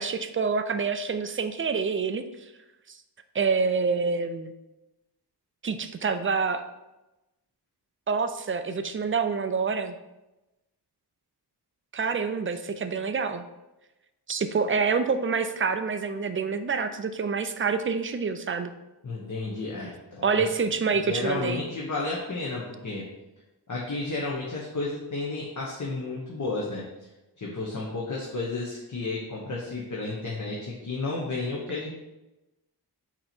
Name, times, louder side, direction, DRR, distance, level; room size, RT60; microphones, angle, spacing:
voice 1, 0.0-2.2 2.9-3.0 3.3-4.5 5.6-6.6 8.1-10.0 11.9-13.4 14.3-18.7 20.2-21.6, right 5 dB, 30° right, 10 dB, 0.4 m, -27 dB
voice 2, 19.0-20.5 21.0-23.0 23.7-26.8 27.4-31.9, left 3 dB, 45° left, -4 dB, 1.1 m, -32 dB
8.5 x 3.0 x 4.4 m, 1.0 s
wide cardioid pair, 120°, 41 cm